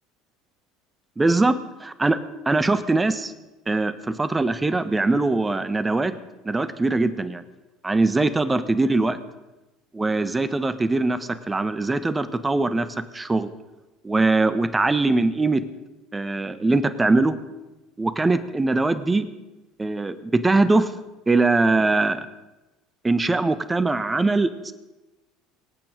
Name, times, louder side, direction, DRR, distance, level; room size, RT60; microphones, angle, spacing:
voice 1, 1.2-2.2 2.5-3.3 3.7-6.1 6.4-7.4 7.8-9.2 9.9-12.9 13.1-13.5 14.0-15.6 16.1-17.3 18.0-19.3 19.8-20.9 21.3-22.3 23.0-24.7, right 3 dB, 15° right, 12 dB, 1.3 m, -22 dB
25.0 x 9.0 x 5.2 m, 1.1 s
hypercardioid pair, 70°, 0 cm